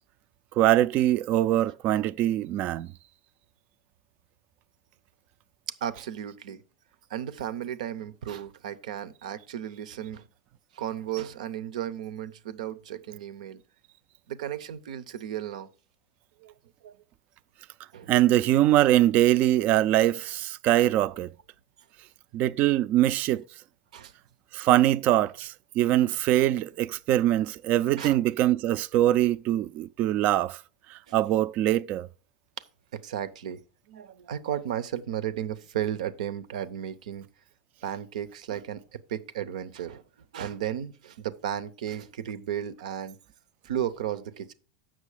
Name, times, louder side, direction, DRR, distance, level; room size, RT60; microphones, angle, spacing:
voice 1, 0.6-2.9 18.1-21.3 22.3-23.4 24.5-30.6 30.9-32.1, right 13 dB, 45° right, 0.4 m, -23 dB
voice 2, 5.8-6.6 7.1-10.3 10.7-13.6 14.3-15.7 16.4-16.5 16.8-16.9 17.9-18.1 23.9-24.1 28.0-28.2 31.1-31.2 32.9-33.6 33.9-37.3 37.8-40.0 40.3-43.2 43.6-44.5, right 10 dB, 80° right, 0.7 m, -34 dB
7.4 x 6.1 x 4.9 m
hypercardioid pair, 110°, 4 cm